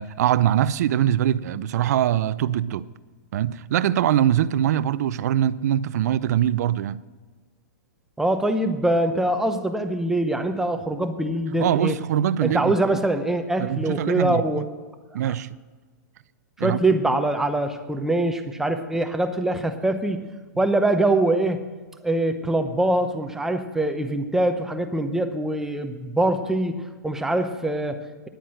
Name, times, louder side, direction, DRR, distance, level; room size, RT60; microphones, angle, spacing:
voice 1, 0.0-2.9 3.3-7.0 11.6-12.7 13.6-14.6 15.1-15.6 16.6-17.0, right 11 dB, 60° right, 0.5 m, -23 dB
voice 2, 8.2-12.0 12.4-14.6 15.3-15.4 16.6-20.2 20.6-21.6 22.0-28.3, right 1 dB, 5° right, 0.8 m, -23 dB
10.5 x 9.1 x 7.7 m
hypercardioid pair, 145°, 10 cm